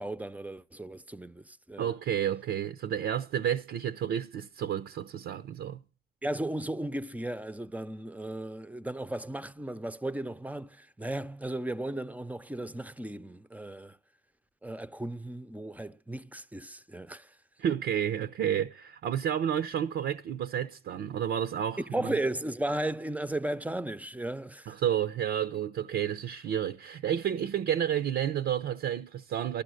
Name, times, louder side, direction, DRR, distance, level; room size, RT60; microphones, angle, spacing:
voice 1, 0.0-1.9 6.2-14.0 14.6-17.3 21.9-24.8, right 1 dB, 5° right, 0.6 m, -35 dB
voice 2, 1.8-5.8 17.6-22.1 24.7-29.6, right 9 dB, 70° right, 0.7 m, -31 dB
15.0 x 12.0 x 6.4 m
cardioid pair, 90°, 20 cm